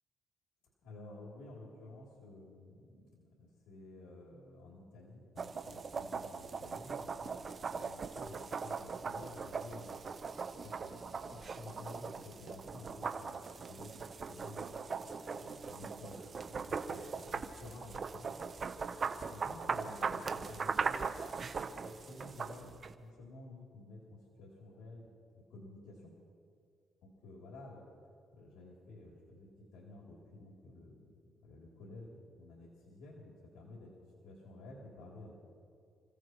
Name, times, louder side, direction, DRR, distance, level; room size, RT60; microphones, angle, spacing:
voice 1, 0.8-10.0 10.6-11.0 11.3-15.0 15.3-18.3 19.3-21.0 21.8-24.0 24.4-25.1 25.5-26.1 27.0-27.8 28.3-31.0 31.4-33.9 34.2-35.3, left 2 dB, 85° left, -4 dB, 3.2 m, -52 dB
sound 1, 5.4-22.9, right 5 dB, 45° right, 0.9 m, -40 dB
29.0 x 16.0 x 3.1 m, 2.4 s
cardioid pair, 90°, 0 cm